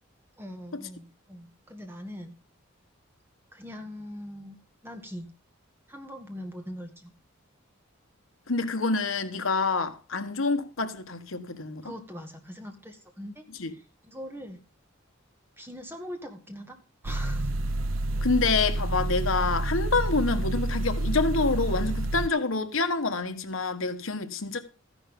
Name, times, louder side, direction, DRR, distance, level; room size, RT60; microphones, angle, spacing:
voice 1, 0.4-2.3 3.5-5.3 5.9-7.1 11.8-13.4 13.7-14.6 15.6-17.5, equal, 10° right, 1.8 m, -42 dB
voice 2, 8.5-11.9 13.6-13.7 18.2-24.6, left 3 dB, 75° left, 1.3 m, -27 dB
sound 1, 17.0-22.3, right 1 dB, 75° right, 0.8 m, -29 dB
14.0 x 10.5 x 3.7 m
head